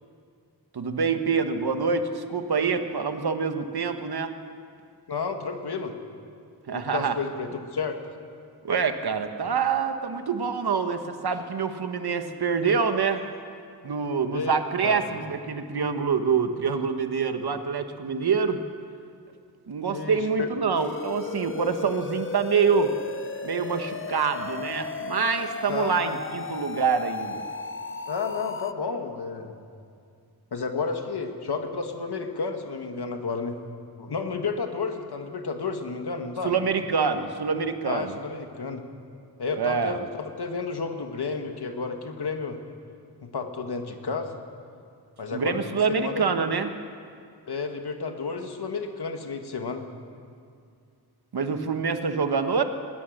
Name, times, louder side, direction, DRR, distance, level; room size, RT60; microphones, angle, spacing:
voice 1, 0.7-4.3 6.7-7.1 8.6-13.2 13.8-18.6 19.7-22.9 23.4-27.4 36.4-38.1 39.6-40.0 45.3-46.7 51.3-52.6, right 5 dB, 70° right, 8 dB, 1.3 m, -26 dB
voice 2, 5.1-5.9 6.7-8.0 14.3-15.0 19.9-20.5 25.7-26.2 28.1-29.5 30.5-33.6 34.0-36.5 37.9-38.8 39.4-42.6 43.2-44.3 45.2-46.3 47.5-49.9, left 4 dB, 75° left, 5 dB, 2.1 m, -31 dB
sound 1, 20.7-28.7, left 4 dB, 30° left, 0.8 m, -35 dB
20.5 x 20.0 x 6.7 m, 2.3 s
wide cardioid pair, 115°, 39 cm